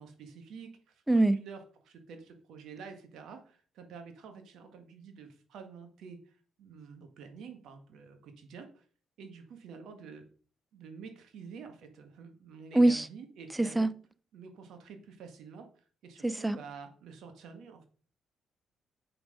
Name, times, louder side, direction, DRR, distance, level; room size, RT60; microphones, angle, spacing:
voice 1, 0.0-8.8 9.2-10.3 10.7-13.9 14.3-15.7 16.0-17.9, right 5 dB, 75° right, 1.9 m, -48 dB
voice 2, 12.7-13.1 13.8-13.9 16.2-16.6, right 2 dB, 15° right, 0.7 m, -23 dB
7.9 x 5.9 x 5.1 m
supercardioid pair, 65°, 0 cm